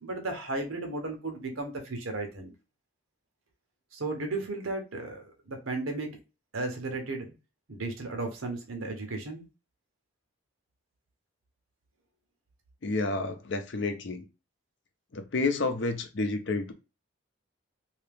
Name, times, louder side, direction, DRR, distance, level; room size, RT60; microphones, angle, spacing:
voice 1, 0.0-2.5 3.9-6.2 6.5-7.3 7.7-9.4, right 2 dB, 85° right, 1.1 m, -34 dB
voice 2, 12.8-14.3 15.1-16.7, left 3 dB, 60° left, 0.6 m, -30 dB
2.8 x 2.8 x 3.4 m
head